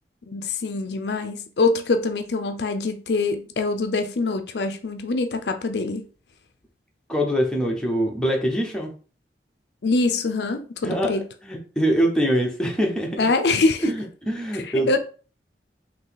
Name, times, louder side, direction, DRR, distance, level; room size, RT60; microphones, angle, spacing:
voice 1, 0.3-6.1 9.8-11.2 13.2-13.9 14.9-15.0, left 3 dB, 70° left, 0.5 m, -24 dB
voice 2, 7.1-8.9 10.8-13.3 13.8-15.0, equal, 5° left, 0.8 m, -24 dB
3.9 x 2.8 x 3.9 m
head